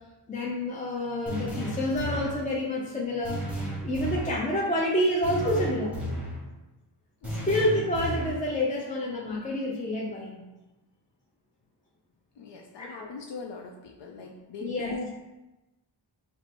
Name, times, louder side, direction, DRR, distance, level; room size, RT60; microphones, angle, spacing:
voice 1, 0.3-3.5 3.8-6.0 7.3-10.4 12.8-13.1 14.6-14.9, left 1 dB, 20° left, -4 dB, 0.5 m, -28 dB
sound 1, 1.3-2.5 3.2-4.4 5.2-6.4 7.2-8.4, right 1 dB, 5° right, 0.9 m, -33 dB
voice 2, 12.4-15.1, left 4 dB, 70° left, 0 dB, 0.5 m, -39 dB
4.3 x 2.0 x 4.3 m, 1.0 s
wide cardioid pair, 110°, 44 cm